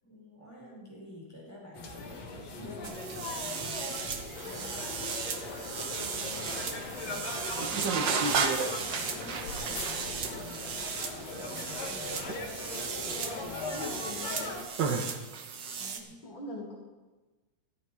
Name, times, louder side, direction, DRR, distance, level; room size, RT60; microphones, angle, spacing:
voice 1, 0.0-3.8 4.4-5.2 5.7-10.9 11.3-12.3 12.8-13.9 15.8-16.2, left 1 dB, 10° left, -5 dB, 5.3 m, -49 dB
sound 1, 1.7-14.6, left 3 dB, 60° left, 2.7 m, -40 dB
sound 2, 2.8-16.0, right 5 dB, 60° right, 1.1 m, -34 dB
sound 3, 4.3-10.1, left 9 dB, 90° left, 2.2 m, -48 dB
voice 2, 12.3-12.7 13.7-14.6 16.2-16.7, left 1 dB, 40° left, -3 dB, 2.8 m, -43 dB
14.0 x 12.0 x 4.9 m, 1.2 s
omnidirectional pair, 3.4 m